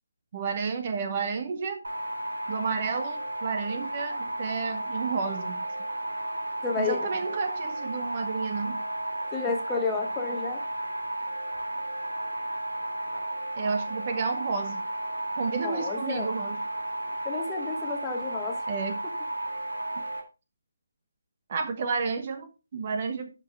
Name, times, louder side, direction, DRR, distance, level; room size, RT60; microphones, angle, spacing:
voice 1, 0.3-1.8 2.5-5.6 6.8-8.8 13.6-14.8 15.4-16.6 18.7-19.0 20.0-20.1 21.5-23.3, right 5 dB, 30° right, 8 dB, 1.2 m, -31 dB
sound 1, 1.8-20.2, right 1 dB, 75° right, 3.3 m, -33 dB
voice 2, 6.6-7.0 9.3-10.6 15.6-16.3 17.2-18.6, left 5 dB, 10° left, 2 dB, 1.4 m, -31 dB
12.5 x 5.9 x 3.5 m, 0.29 s
figure-of-eight pair, 150°, 0 cm